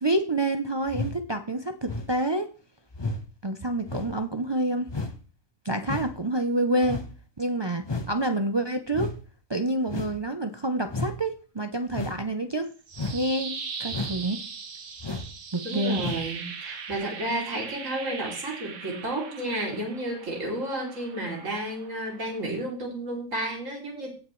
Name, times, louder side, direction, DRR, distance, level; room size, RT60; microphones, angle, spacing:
voice 1, 0.0-2.5 3.4-4.9 5.6-7.0 7.4-9.1 9.5-12.7 13.1-13.5 13.8-14.4 15.5-16.0, right 1 dB, 40° right, 6 dB, 0.4 m, -27 dB
sound 1, 0.9-1.2 1.9-2.2 2.9-3.2 3.9-4.1 4.9-5.2 5.8-6.2 6.8-7.1 7.8-8.1 8.9-9.2 9.9-10.2 10.9-11.2 11.9-12.2 12.9-13.2 13.9-14.2 15.0-15.3 16.0-16.3 16.9-17.0, left 3 dB, 25° left, 0.8 m, -33 dB
sound 2, 12.6-22.7, right 5 dB, 85° right, 1.6 m, -40 dB
voice 2, 15.6-24.1, right 1 dB, 65° right, -1 dB, 3.3 m, -32 dB
17.0 x 5.8 x 3.1 m, 0.37 s
omnidirectional pair, 1.4 m